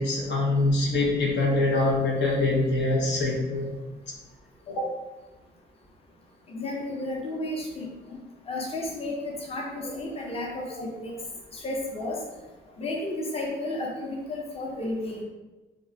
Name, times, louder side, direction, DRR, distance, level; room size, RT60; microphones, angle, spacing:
voice 1, 0.0-3.8 4.7-4.9, left 2 dB, 65° left, -2 dB, 0.7 m, -24 dB
voice 2, 6.5-7.9 8.5-11.1 11.5-12.2 12.8-15.2, left 1 dB, 30° left, -2 dB, 0.7 m, -32 dB
2.5 x 2.2 x 3.8 m, 1.1 s
cardioid pair, 90°, 20 cm